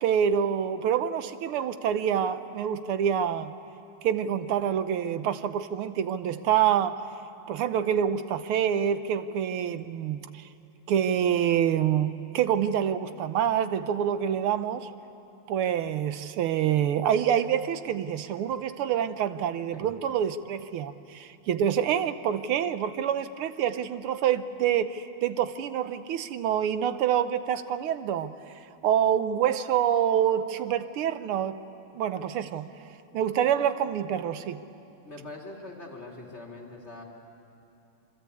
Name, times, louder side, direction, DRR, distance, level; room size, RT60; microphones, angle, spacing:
voice 1, 0.0-3.5 4.0-7.1 7.5-10.5 10.9-14.9 15.5-28.3 28.8-31.6 31.9-32.7 33.1-34.6, right 9 dB, 90° right, 11 dB, 1.8 m, -26 dB
voice 2, 35.0-37.0, left 2 dB, 30° left, 0 dB, 3.4 m, -43 dB
26.5 x 24.5 x 8.4 m, 2.8 s
omnidirectional pair, 2.3 m